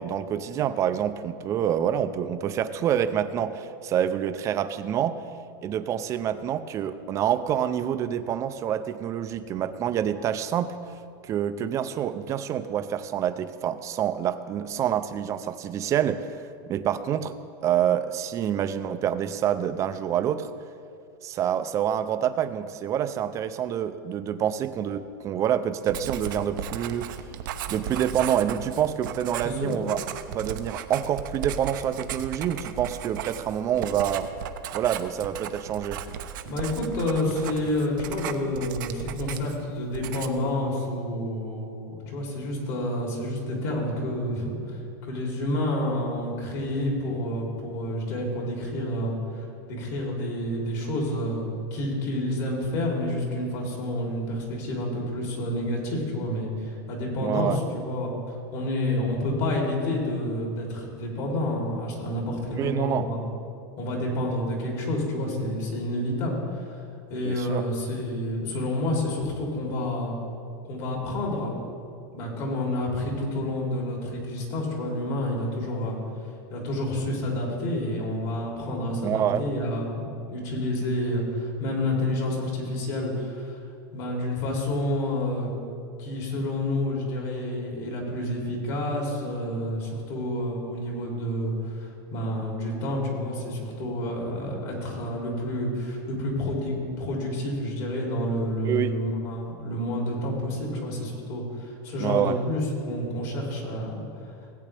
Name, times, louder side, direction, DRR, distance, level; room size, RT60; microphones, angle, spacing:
voice 1, 0.0-5.2 5.6-16.4 16.7-17.4 17.6-20.5 21.2-27.1 27.7-30.0 30.3-34.3 34.7-36.0 57.2-57.6 62.6-63.0 67.2-67.6 79.0-79.4 98.6-99.0 102.0-102.4, right 9 dB, 30° right, 11 dB, 0.5 m, -27 dB
Writing, 25.9-39.7 39.9-40.5, right 9 dB, 75° right, 0.7 m, -36 dB
voice 2, 36.4-63.3 63.8-66.8 67.1-70.2 70.7-71.5 72.1-76.0 76.5-83.6 83.9-85.5 86.0-104.0, left 1 dB, 55° left, -1 dB, 3.1 m, -29 dB
17.5 x 8.5 x 3.4 m, 2.5 s
supercardioid pair, 145°, 11 cm